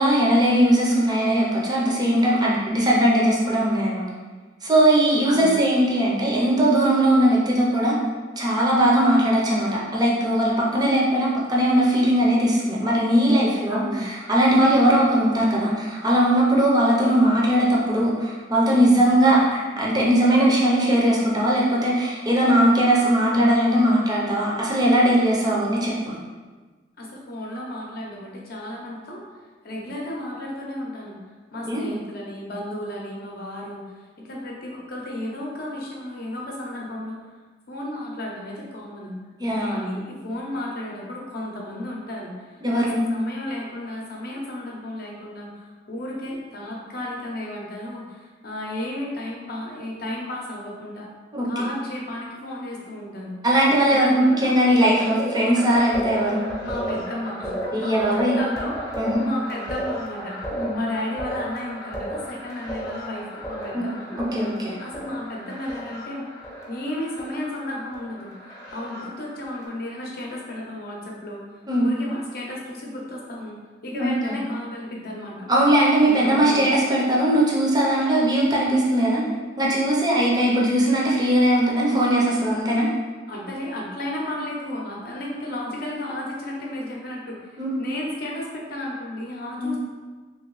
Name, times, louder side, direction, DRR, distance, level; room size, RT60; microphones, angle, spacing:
voice 1, 0.0-4.0 4.6-8.0 8.4-26.1 31.7-31.8 39.4-39.7 42.6-43.0 51.3-51.6 53.4-56.4 57.7-58.4 59.0-59.2 60.6-60.8 63.7-63.8 64.3-64.8 71.7-71.9 73.9-74.3 75.5-79.2 79.6-82.9 87.6-87.8 89.6-89.8, right 1 dB, 20° right, -4 dB, 0.6 m, -19 dB
voice 2, 5.2-5.6 13.7-14.0 27.0-29.2 29.6-31.2 31.5-33.9 34.2-37.3 37.7-39.1 39.6-51.1 51.4-53.3 53.9-54.7 56.6-64.2 64.8-66.2 66.7-68.3 68.7-71.4 71.8-73.5 73.8-75.5 76.1-76.8 83.3-89.8, left 1 dB, 55° left, -2 dB, 0.7 m, -33 dB
sound 1, 54.8-69.6, equal, 15° left, 0.7 m, -34 dB
2.9 x 2.7 x 3.0 m, 1.4 s
head